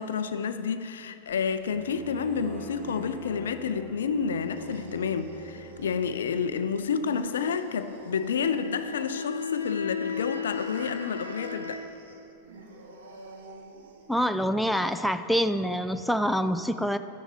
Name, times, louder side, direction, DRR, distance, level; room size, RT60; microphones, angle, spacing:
voice 1, 0.0-11.8, left 6 dB, 65° left, 11 dB, 0.5 m, -30 dB
sound 1, 1.3-14.3, right 3 dB, 60° right, 1.3 m, -48 dB
Bowed string instrument, 1.6-6.5, right 1 dB, 20° right, 2.1 m, -46 dB
sound 2, 8.3-11.8, left 6 dB, 85° right, 0.9 m, -35 dB
voice 2, 14.1-17.0, equal, ahead, 9 dB, 0.4 m, -26 dB
11.5 x 9.9 x 4.8 m, 2.6 s
figure-of-eight pair, 90°, 0 cm